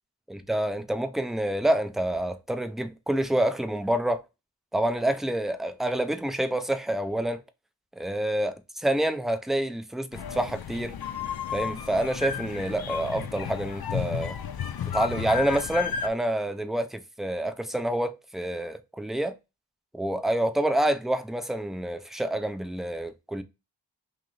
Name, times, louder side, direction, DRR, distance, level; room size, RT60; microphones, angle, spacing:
voice 1, 0.3-4.2 4.7-7.4 8.0-10.9 11.5-14.4 14.9-19.3 19.9-23.4, right 1 dB, ahead, 0.4 m, -27 dB
sound 1, 10.1-16.1, left 8 dB, 60° left, 0.5 m, -33 dB
2.9 x 2.9 x 3.8 m
wide cardioid pair, 50°, 43 cm